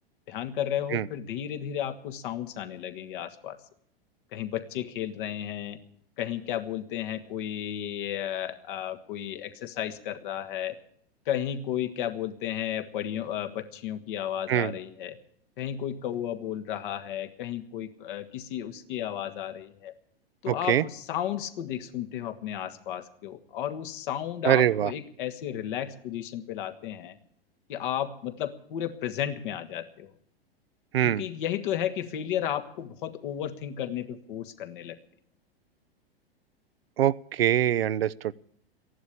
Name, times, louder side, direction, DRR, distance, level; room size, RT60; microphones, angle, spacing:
voice 1, 0.3-3.6 4.3-5.8 6.2-10.8 11.3-15.2 15.6-19.9 20.4-27.2 27.7-30.1 31.0-35.0, left 10 dB, 55° left, 8 dB, 1.7 m, -33 dB
voice 2, 20.5-20.8 24.4-24.9 30.9-31.2 37.0-38.3, right 11 dB, 75° right, 17 dB, 0.6 m, -24 dB
15.0 x 11.0 x 8.5 m, 0.65 s
hypercardioid pair, 100°, 30 cm